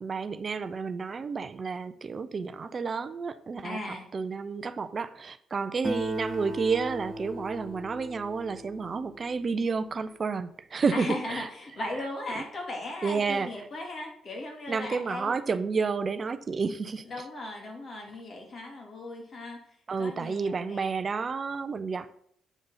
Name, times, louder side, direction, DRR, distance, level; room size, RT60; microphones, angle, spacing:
voice 1, 0.0-3.9 4.1-11.5 12.4-12.5 13.0-13.5 14.7-17.0 19.9-22.1, right 5 dB, 45° right, 12 dB, 0.5 m, -30 dB
voice 2, 3.6-4.1 10.9-15.3 17.0-19.6 20.0-20.9, left 2 dB, 55° left, 1 dB, 2.6 m, -37 dB
Acoustic guitar, 5.8-9.6, equal, 15° left, 1.7 m, -38 dB
8.3 x 3.9 x 5.5 m, 0.67 s
supercardioid pair, 70°, 0 cm